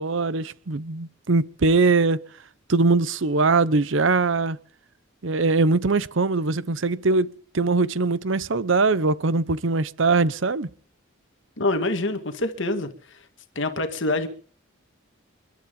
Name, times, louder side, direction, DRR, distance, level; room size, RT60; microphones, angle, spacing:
voice 1, 0.0-2.2 2.7-4.6 5.2-10.7, right 3 dB, 65° right, 0.8 m, -22 dB
voice 2, 11.6-12.9 13.6-14.3, left 2 dB, 65° left, 2.0 m, -25 dB
29.5 x 12.5 x 3.9 m
head